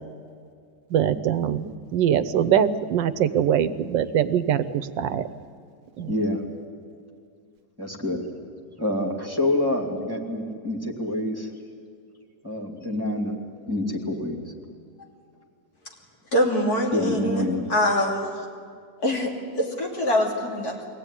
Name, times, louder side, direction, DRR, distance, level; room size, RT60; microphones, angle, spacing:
voice 1, 0.9-5.3 6.0-6.1, right 9 dB, 90° right, 14 dB, 1.5 m, -23 dB
voice 2, 6.1-6.4 7.8-8.2 8.8-11.5 12.4-13.4 13.6-14.5 16.9-17.7, left 1 dB, 10° right, 2 dB, 2.4 m, -27 dB
voice 3, 16.3-17.4 17.7-18.5 19.0-20.8, left 1 dB, 55° left, -1 dB, 3.5 m, -24 dB
23.0 x 17.5 x 9.9 m, 2.3 s
omnidirectional pair, 1.9 m